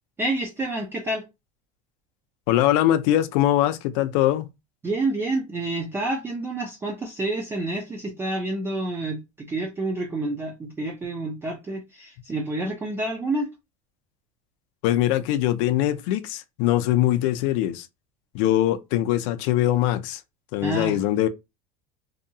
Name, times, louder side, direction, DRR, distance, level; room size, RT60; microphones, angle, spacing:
voice 1, 0.2-1.3 4.8-13.5 20.6-21.0, right 2 dB, 15° right, 0.4 m, -28 dB
voice 2, 2.5-4.5 14.8-17.9 18.3-20.2 20.5-21.3, left 13 dB, 65° left, 0.5 m, -22 dB
2.7 x 2.2 x 2.7 m
cardioid pair, 155°, 17 cm